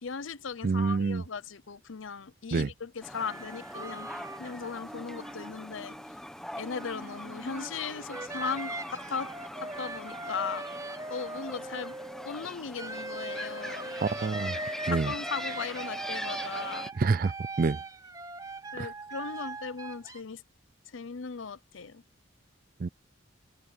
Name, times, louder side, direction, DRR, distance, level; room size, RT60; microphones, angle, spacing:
voice 1, 0.0-4.1 4.4-5.9 6.6-9.3 9.6-10.6 11.1-11.9 12.2-13.9 14.9-16.9 18.7-20.4 20.9-22.0, left 5 dB, 75° left, 0.7 m, -37 dB
voice 2, 0.6-1.2 2.5-2.7 14.0-14.6 14.9-15.1 17.0-17.3 17.6-17.8 18.8-18.9 22.8-22.9, right 4 dB, 45° right, 0.4 m, -27 dB
sound 1, 3.0-16.9, equal, 5° left, 1.1 m, -42 dB
sound 2, 3.2-6.1 6.5-12.3 12.8-20.2, right 2 dB, 20° right, 3.1 m, -40 dB
head